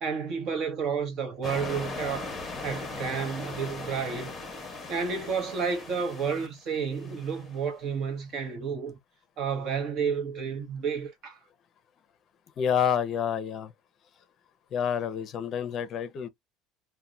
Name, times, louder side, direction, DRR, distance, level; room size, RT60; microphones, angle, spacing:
voice 1, 0.0-2.3 2.6-4.3 4.9-9.0 9.4-11.4, right 6 dB, 45° right, 1.0 m, -31 dB
sound 1, 1.4-7.6, left 3 dB, 15° left, 0.9 m, -39 dB
voice 2, 12.6-13.7 14.7-16.3, left 8 dB, 35° left, 0.6 m, -28 dB
2.8 x 2.1 x 2.3 m
cardioid pair, 145°, 0 cm